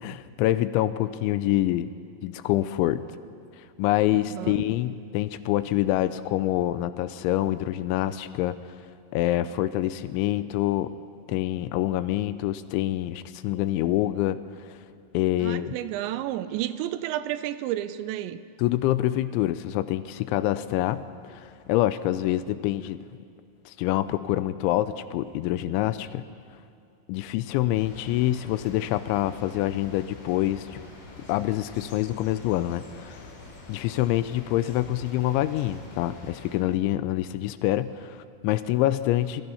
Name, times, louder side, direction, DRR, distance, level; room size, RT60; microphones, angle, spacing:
voice 1, 0.0-1.9 2.2-3.0 3.8-8.8 9.1-10.9 11.3-14.4 14.7-14.8 15.1-15.7 18.6-23.0 23.7-26.2 27.1-30.8 31.3-33.3 33.7-39.4, left 14 dB, 85° left, 13 dB, 3.0 m, -26 dB
voice 2, 4.1-4.7 15.4-18.4, right 13 dB, 80° right, 13 dB, 2.9 m, -31 dB
sound 1, 27.7-36.6, left 3 dB, 60° left, 5.2 m, -46 dB
27.5 x 20.5 x 5.6 m, 2.5 s
omnidirectional pair, 5.3 m